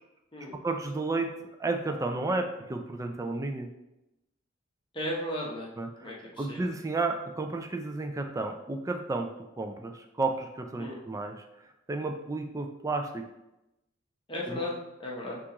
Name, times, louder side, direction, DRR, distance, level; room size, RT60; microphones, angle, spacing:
voice 1, 0.6-1.3 1.6-3.7 5.8-5.9 6.4-9.3 9.6-11.4 11.9-13.3 14.5-14.6, right 3 dB, 15° right, 5 dB, 0.3 m, -32 dB
voice 2, 4.9-5.7 6.0-6.7 10.8-11.0 14.3-15.4, left 1 dB, 25° left, -3 dB, 0.9 m, -35 dB
5.9 x 2.4 x 3.0 m, 0.93 s
head